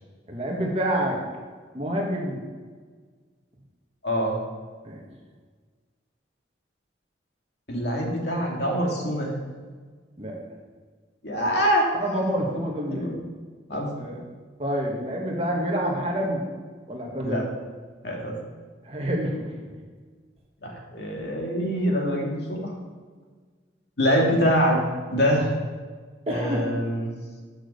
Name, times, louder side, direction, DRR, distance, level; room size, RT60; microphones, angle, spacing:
voice 1, 0.3-1.2 1.7-2.4 4.8-5.0 10.2-10.4 11.9-13.1 13.7-14.2 14.6-16.4 16.9-17.4 18.8-19.8 26.3-26.7, equal, 30° right, -1 dB, 1.4 m, -28 dB
voice 2, 4.0-4.4 7.7-9.4 11.2-11.9 12.9-13.1 13.7-13.9 17.2-17.4 18.0-18.4 20.6-22.7 24.0-24.8 25.1-25.5 26.3-27.1, equal, 65° left, -1 dB, 1.9 m, -24 dB
6.8 x 6.2 x 6.4 m, 1.5 s
head